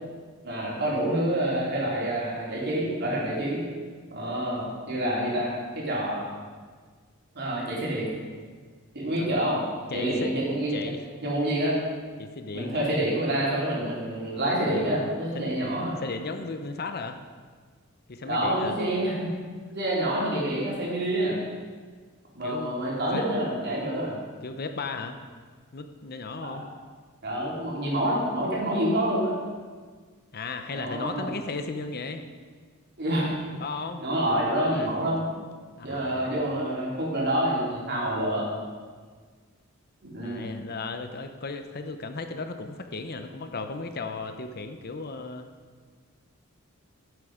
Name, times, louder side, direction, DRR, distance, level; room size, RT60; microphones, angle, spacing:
voice 1, 0.4-3.6 4.1-6.2 7.3-8.1 8.9-9.6 9.9-10.7 11.2-11.8 12.5-16.0 18.2-19.3 19.7-21.4 22.3-24.2 26.4-26.6 27.2-29.3 30.7-31.3 33.0-33.6 34.0-35.3 35.8-38.5 40.0-40.5, right 1 dB, 50° right, -5 dB, 3.6 m, -27 dB
voice 2, 9.9-10.3 10.7-11.0 12.2-12.9 15.3-15.5 16.0-17.2 18.1-18.8 22.4-22.7 23.0-23.3 24.4-25.2 25.7-26.7 30.3-32.2 33.6-34.0 34.6-34.9 35.8-36.3 40.2-45.5, left 3 dB, 45° left, 7 dB, 0.8 m, -35 dB
15.0 x 8.0 x 5.0 m, 1.5 s
head